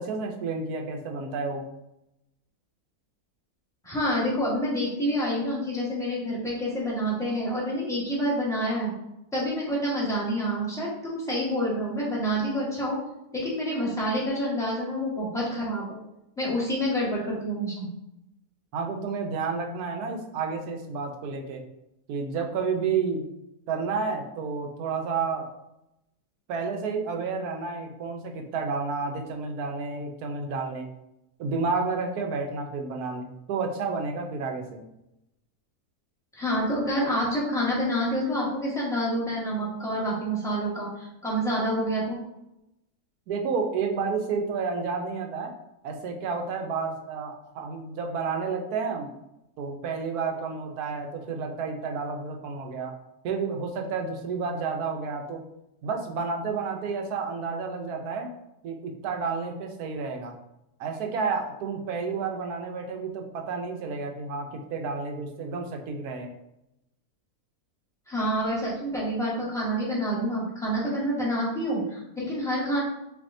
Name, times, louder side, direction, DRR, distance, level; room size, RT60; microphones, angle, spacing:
voice 1, 0.0-1.7 18.7-21.6 22.1-23.3 23.7-25.5 26.5-30.9 31.4-34.8 43.3-45.5 45.8-49.1 49.6-53.0 53.2-55.4 55.8-58.3 58.6-60.4 60.8-66.3, right 5 dB, 80° right, 3 dB, 1.2 m, -30 dB
voice 2, 3.8-8.9 9.3-13.0 13.3-16.0 16.4-17.9 36.3-42.2 68.1-72.8, equal, ahead, -7 dB, 1.4 m, -28 dB
6.8 x 2.7 x 2.6 m, 0.86 s
omnidirectional pair, 1.6 m